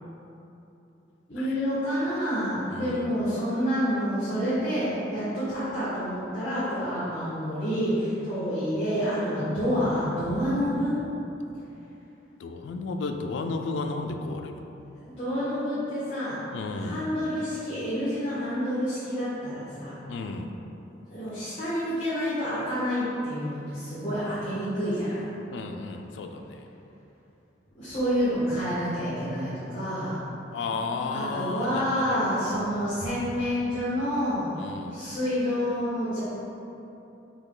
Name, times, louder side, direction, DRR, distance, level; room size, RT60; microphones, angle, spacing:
voice 1, 1.3-10.9 15.0-20.0 21.1-25.2 27.8-30.2 31.1-34.6 34.9-36.2, equal, 35° left, -12 dB, 1.0 m, -28 dB
voice 2, 2.7-3.1 12.4-14.7 16.5-17.1 20.1-20.5 25.5-26.6 30.5-32.2 32.4-32.7 34.6-34.9, left 3 dB, 75° left, 5 dB, 0.3 m, -33 dB
5.5 x 2.2 x 3.8 m, 3.0 s
head